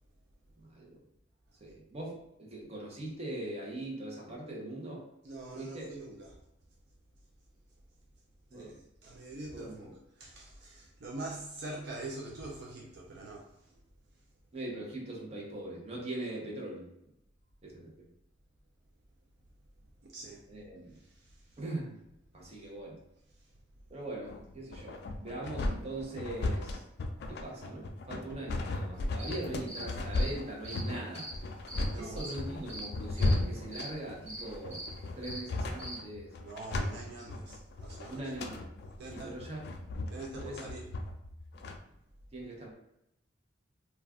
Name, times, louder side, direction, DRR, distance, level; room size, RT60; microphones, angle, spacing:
voice 1, 0.6-0.9 1.6-5.0 5.6-5.9 8.5-8.7 9.5-9.9 14.5-16.9 17.6-18.1 20.5-21.0 21.6-22.0 22.3-23.0 23.9-26.8 27.3-31.3 32.0-34.9 35.1-36.3 38.1-38.7 39.1-39.6 40.4-40.6 42.3-42.7, right 1 dB, 35° right, -2 dB, 0.8 m, -41 dB
voice 2, 5.2-6.4 8.5-13.8 20.0-20.5 20.9-21.6 22.4-22.7 23.4-23.5 31.9-32.3 36.4-38.3 39.0-39.4 40.1-40.9, right 2 dB, 65° right, -1 dB, 0.4 m, -45 dB
sound 1, 24.3-41.8, left 2 dB, 60° left, 0.4 m, -35 dB
sound 2, 28.9-36.0, right 1 dB, 20° right, 1.1 m, -44 dB
2.4 x 2.2 x 3.5 m, 0.83 s
head